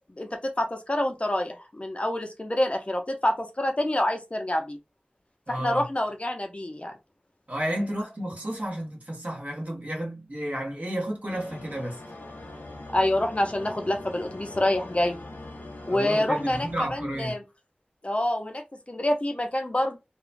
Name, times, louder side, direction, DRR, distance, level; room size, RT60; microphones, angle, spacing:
voice 1, 0.2-4.8 5.5-6.9 12.9-15.2 15.9-17.4 18.0-20.0, left 1 dB, 40° left, 0.6 m, -27 dB
voice 2, 5.5-5.8 7.5-12.0 15.9-17.4, right 1 dB, 50° right, 1.1 m, -32 dB
sound 1, 11.3-17.3, left 2 dB, 90° left, 0.7 m, -42 dB
2.9 x 2.2 x 2.5 m
wide cardioid pair, 40°, 3 cm